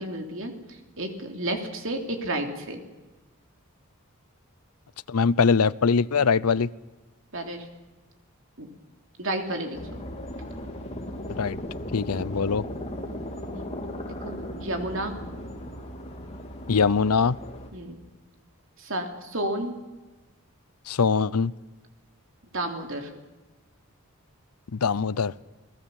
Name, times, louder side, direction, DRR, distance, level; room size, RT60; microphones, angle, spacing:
voice 1, 0.0-2.8 7.3-7.7 8.6-8.7 9.2-10.1 13.5-13.7 14.1-15.1 17.7-18.0 18.8-19.7 22.5-23.1, right 1 dB, 60° right, 4 dB, 3.2 m, -32 dB
voice 2, 5.1-6.7 11.3-11.6 11.9-12.6 16.7-17.4 20.9-21.5 24.7-25.3, left 5 dB, 85° left, 18 dB, 0.7 m, -22 dB
sound 1, 9.7-17.7, left 1 dB, 30° left, 3.0 m, -37 dB
29.5 x 18.5 x 7.2 m, 1.2 s
head